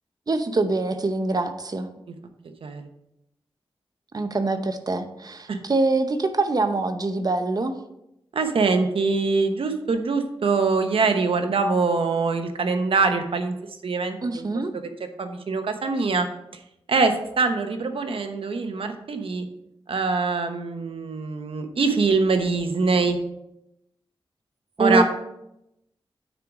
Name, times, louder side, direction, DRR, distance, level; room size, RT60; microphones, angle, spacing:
voice 1, 0.3-1.9 4.1-7.8 14.2-14.7 24.8-25.0, right 2 dB, 45° right, 8 dB, 0.8 m, -24 dB
voice 2, 8.3-13.6 13.8-14.5 15.2-16.3 16.9-19.5 19.9-23.2 24.8-25.0, right 4 dB, 75° right, 7 dB, 1.0 m, -23 dB
9.2 x 4.7 x 4.9 m, 0.84 s
wide cardioid pair, 95°, 9 cm